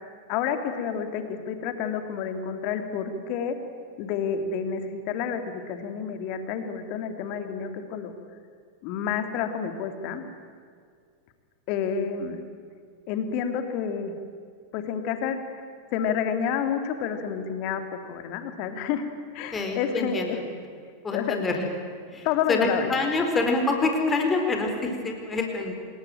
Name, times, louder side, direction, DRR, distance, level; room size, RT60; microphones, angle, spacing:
voice 1, 0.3-3.6 4.0-8.1 8.8-10.2 11.7-12.4 13.1-14.1 14.7-15.4 15.9-17.8 18.1-19.0 19.3-20.4 21.1-21.4 22.2-22.9, left 7 dB, 45° left, 8 dB, 2.8 m, -29 dB
voice 2, 19.5-20.3 21.0-21.6 22.1-25.7, left 3 dB, 15° left, 3 dB, 4.4 m, -26 dB
26.5 x 21.0 x 9.1 m, 2.2 s
figure-of-eight pair, 90°, 0 cm